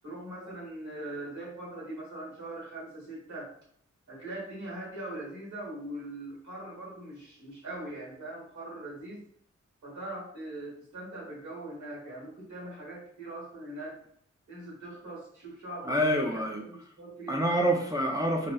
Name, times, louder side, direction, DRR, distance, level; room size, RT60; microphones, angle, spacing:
voice 1, 0.0-3.5 4.1-9.2 9.8-14.0 14.5-17.4, right 1 dB, 80° right, -4 dB, 1.2 m, -41 dB
voice 2, 15.8-16.6 17.3-18.5, equal, 10° right, 0 dB, 0.3 m, -27 dB
2.8 x 2.0 x 2.2 m, 0.65 s
cardioid pair, 55°, 29 cm